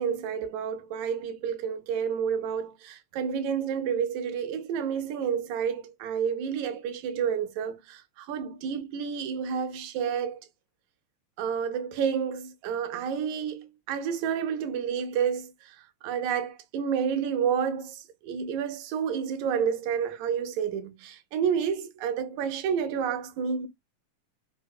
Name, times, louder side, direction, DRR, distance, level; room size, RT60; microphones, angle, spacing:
voice 1, 0.0-10.4 11.4-15.8 16.0-18.0 18.2-23.7, right 7 dB, 80° right, 2.0 m, -30 dB
4.8 x 2.1 x 2.2 m
omnidirectional pair, 3.3 m